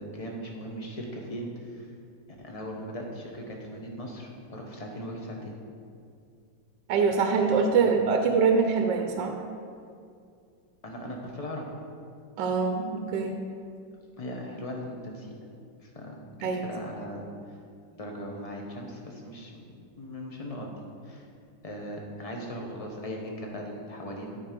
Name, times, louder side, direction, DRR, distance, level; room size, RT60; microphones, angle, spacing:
voice 1, 0.0-1.9 2.4-5.5 10.8-11.6 14.2-15.3 15.8-17.2 17.9-19.7 20.0-20.7 21.0-21.3 21.6-24.4, equal, 25° left, 0 dB, 0.9 m, -38 dB
voice 2, 6.9-9.4 12.4-13.4 16.4-16.6, right 5 dB, 75° right, 4 dB, 1.3 m, -24 dB
12.5 x 4.7 x 5.1 m, 2.3 s
omnidirectional pair, 2.0 m